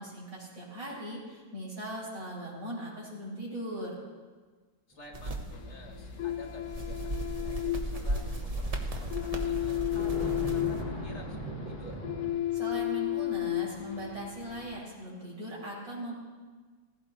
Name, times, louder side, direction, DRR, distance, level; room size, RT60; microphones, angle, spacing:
voice 1, 0.0-4.0 12.5-16.1, equal, 55° right, -6 dB, 5.5 m, -39 dB
voice 2, 4.9-12.0, left 2 dB, 45° left, 0 dB, 2.0 m, -51 dB
sound 1, 4.9-5.6 5.8-6.3 7.1-7.3 7.7-12.3, right 1 dB, 10° right, 5.9 m, -41 dB
sound 2, 5.1-10.8, right 1 dB, 30° right, 0.9 m, -36 dB
sound 3, 5.5-14.8, left 14 dB, 60° left, 0.9 m, -34 dB
16.0 x 15.0 x 4.1 m, 1.4 s
omnidirectional pair, 1.7 m